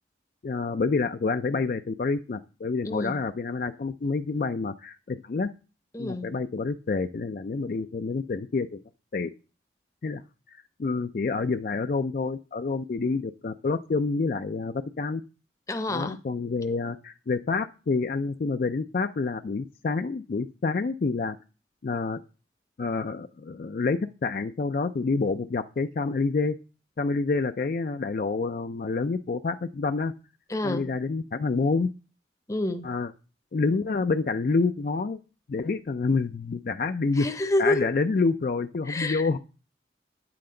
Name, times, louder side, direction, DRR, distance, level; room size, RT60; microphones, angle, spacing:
voice 1, 0.4-5.5 6.0-8.8 9.1-9.3 10.0-10.2 10.5-15.2 15.9-21.4 21.8-22.2 22.8-26.6 27.0-30.1 30.6-31.9 32.8-33.1 33.5-35.2 35.5-37.3 37.6-39.4, left 4 dB, 50° left, 0.4 m, -28 dB
voice 2, 2.8-3.2 5.9-6.3 15.7-16.2 30.5-30.9 32.5-32.8 37.2-37.9 38.9-39.3, left 1 dB, 20° left, 0.7 m, -28 dB
9.4 x 7.7 x 3.8 m
head